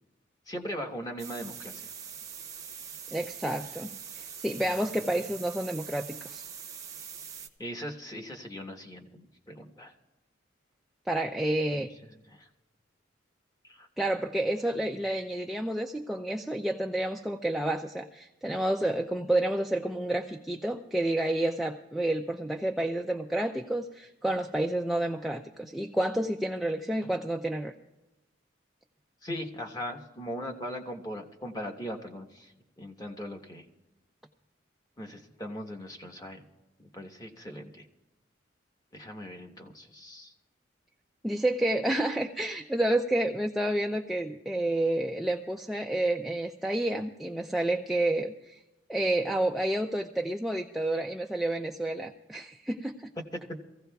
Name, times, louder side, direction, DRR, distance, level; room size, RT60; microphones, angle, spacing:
voice 1, 0.5-1.9 4.6-4.7 7.6-9.9 11.7-11.9 12.3-12.5 13.7-13.9 29.2-32.5 32.8-33.6 35.0-36.4 36.8-37.9 38.9-40.3, equal, 20° left, 3 dB, 1.1 m, -39 dB
sound 1, 1.2-7.5, right 7 dB, 15° right, 0.8 m, -43 dB
voice 2, 3.1-3.9 4.2-6.4 11.1-11.9 14.0-27.7 41.2-48.6 48.9-53.1, right 1 dB, ahead, 2 dB, 0.4 m, -29 dB
24.5 x 15.5 x 2.3 m, 0.99 s
head